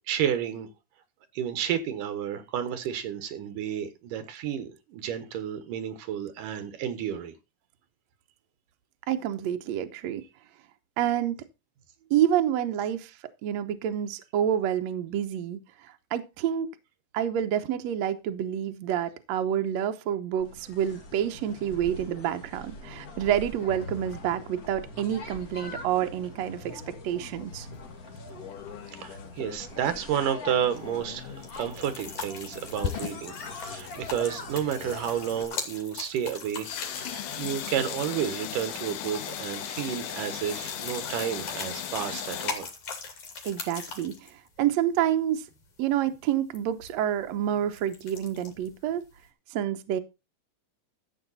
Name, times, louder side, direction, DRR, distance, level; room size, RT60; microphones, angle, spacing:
voice 1, 0.1-0.7 1.3-7.3 28.9-36.7 37.0-42.7, right 9 dB, 85° right, 2.9 m, -31 dB
voice 2, 9.1-10.2 11.0-11.4 12.1-13.1 13.4-15.6 16.1-16.7 17.1-27.7 37.0-37.2 43.4-45.4 45.8-49.0 49.5-50.0, right 10 dB, 65° right, 2.0 m, -28 dB
sound 1, 20.4-35.4, left 3 dB, 40° left, 1.4 m, -43 dB
sound 2, 28.4-29.7 30.5-31.5 32.2-34.2 34.7-35.1 36.6-42.5, left 10 dB, 85° left, 2.6 m, -37 dB
sound 3, 30.7-49.3, left 5 dB, 65° left, 4.0 m, -42 dB
13.0 x 7.8 x 4.1 m
omnidirectional pair, 3.7 m